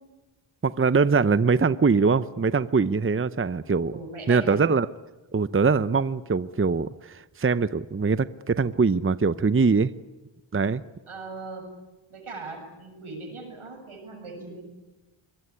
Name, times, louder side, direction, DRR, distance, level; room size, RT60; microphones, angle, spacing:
voice 1, 0.6-3.9 4.3-4.9 5.3-9.9 10.5-10.8, right 4 dB, 25° right, 14 dB, 0.8 m, -22 dB
voice 2, 3.9-4.6 11.1-11.7 12.1-14.6, right 3 dB, 85° right, 4 dB, 7.4 m, -39 dB
23.0 x 21.0 x 9.8 m, 1.1 s
cardioid pair, 45°, 49 cm